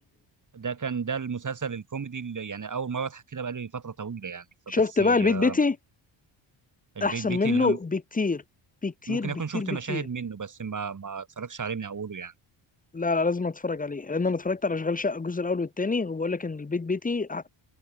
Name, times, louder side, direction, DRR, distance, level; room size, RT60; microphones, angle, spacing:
voice 1, 0.5-5.6 6.9-7.8 9.1-12.3, right 6 dB, 40° right, 3.4 m, -33 dB
voice 2, 4.7-5.8 7.0-8.4 8.8-10.0 12.9-17.5, left 3 dB, 15° left, 0.9 m, -26 dB
open air
cardioid pair, 90°, 47 cm